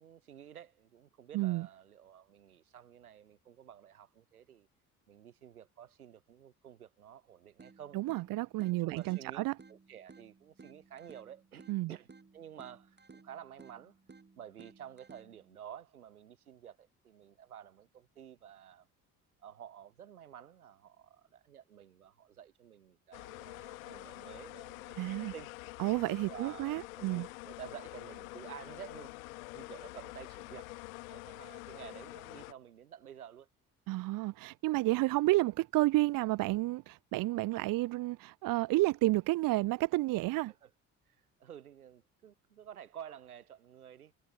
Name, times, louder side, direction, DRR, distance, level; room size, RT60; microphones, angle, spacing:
voice 1, 0.0-4.7 5.1-8.0 8.6-13.9 14.4-18.9 19.4-25.5 26.3-29.1 29.5-30.8 31.1-33.5 40.5-40.7 41.1-44.1, right 9 dB, 80° right, 6.1 m, -51 dB
voice 2, 1.3-1.7 7.9-9.5 11.7-11.9 25.0-25.3 25.8-27.3 33.9-40.5, right 19 dB, 50° right, 0.7 m, -31 dB
sound 1, 7.6-15.6, right 4 dB, 25° right, 6.4 m, -58 dB
sound 2, 23.1-32.5, left 23 dB, 70° left, 1.2 m, -47 dB
figure-of-eight pair, 50°, 43 cm